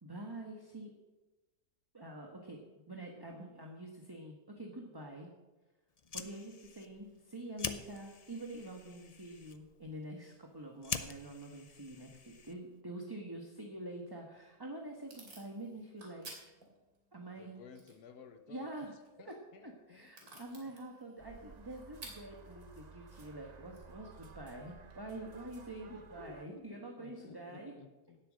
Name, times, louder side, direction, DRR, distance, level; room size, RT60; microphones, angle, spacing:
voice 1, 0.0-0.9 1.9-2.6 2.9-5.3 6.1-16.4 17.1-17.6 18.5-18.9 19.2-19.3 19.6-27.7, right 1 dB, 15° right, 1 dB, 1.3 m, -46 dB
Fire, 5.9-12.8, left 5 dB, 45° left, 0.5 m, -45 dB
Packing tape duct tape / Tearing, 14.2-25.0, right 2 dB, 75° right, 3.6 m, -58 dB
voice 2, 17.3-18.9 19.2-20.7 25.9-28.2, left 5 dB, 85° left, 8 dB, 1.6 m, -55 dB
sound 1, 21.2-26.5, right 4 dB, 35° right, 0.8 m, -55 dB
17.0 x 8.0 x 6.4 m, 1.1 s
omnidirectional pair, 1.6 m